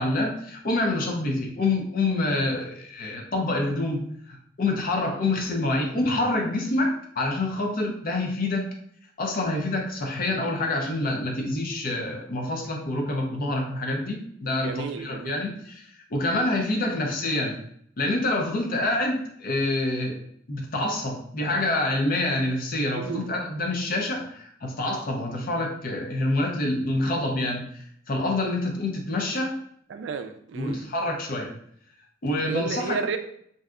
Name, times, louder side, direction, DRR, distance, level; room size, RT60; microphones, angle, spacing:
voice 1, 0.0-8.6 9.2-17.6 18.0-20.2 20.5-29.5 30.5-31.5 32.2-33.0, left 2 dB, 50° left, 1 dB, 0.6 m, -27 dB
voice 2, 14.6-15.5 23.0-23.3 29.9-30.9 32.4-33.2, right 5 dB, 65° right, 8 dB, 0.3 m, -32 dB
2.7 x 2.2 x 3.6 m, 0.67 s
head